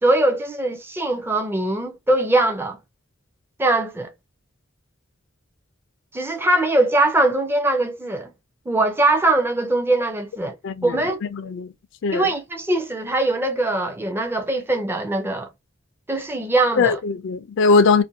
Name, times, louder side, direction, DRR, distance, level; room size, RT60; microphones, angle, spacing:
voice 1, 0.0-2.8 3.6-4.1 6.1-8.3 8.7-10.5 10.8-11.2 12.1-15.5 16.1-17.0, right 2 dB, 10° right, 0.4 m, -21 dB
voice 2, 10.6-11.0 11.3-11.7 12.0-12.2 16.8-18.0, left 4 dB, 65° left, 0.4 m, -19 dB
2.5 x 2.2 x 2.6 m
head